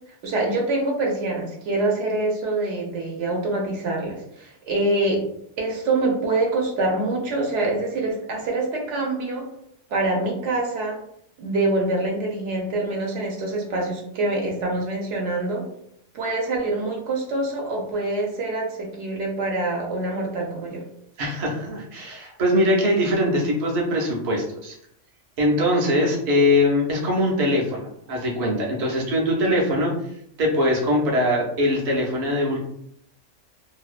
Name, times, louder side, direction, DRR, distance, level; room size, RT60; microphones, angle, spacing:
voice 1, 0.2-5.2 5.6-9.5 9.9-11.0 11.4-15.6 16.1-20.8, right 2 dB, 75° right, 0 dB, 0.9 m, -25 dB
voice 2, 21.2-24.8 25.4-29.9 30.4-32.6, left 1 dB, 45° right, -2 dB, 0.6 m, -22 dB
2.6 x 2.1 x 2.4 m, 0.71 s
omnidirectional pair, 1.3 m